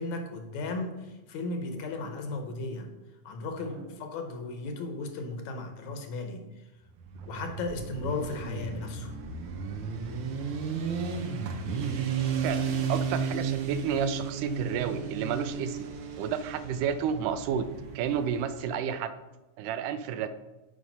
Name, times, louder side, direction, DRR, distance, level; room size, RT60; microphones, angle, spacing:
voice 1, 0.0-2.9 3.2-6.4 7.3-9.2, left 3 dB, 70° left, 4 dB, 2.1 m, -35 dB
Motorcycle, 7.0-18.7, right 5 dB, 70° right, 1.3 m, -34 dB
voice 2, 9.7-10.3 12.4-12.6 12.9-15.9 16.2-17.7 18.0-19.1 19.6-20.3, right 8 dB, 90° right, 11 dB, 2.2 m, -31 dB
7.6 x 5.0 x 5.4 m, 1.1 s
omnidirectional pair, 3.6 m